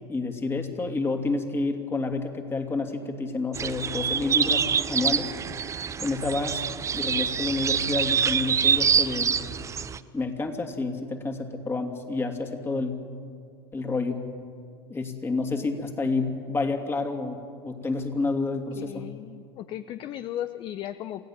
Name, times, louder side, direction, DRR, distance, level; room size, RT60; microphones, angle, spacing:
voice 1, 0.1-5.3 6.0-6.6 6.9-9.4 10.1-13.0 13.7-14.2 14.9-19.1, left 3 dB, 20° left, 5 dB, 2.9 m, -29 dB
sound 1, 3.5-10.0, right 7 dB, 25° right, 0.8 m, -26 dB
voice 2, 18.7-21.3, left 12 dB, 40° left, 13 dB, 0.7 m, -36 dB
28.0 x 16.0 x 7.5 m, 2.3 s
hypercardioid pair, 85°, 13 cm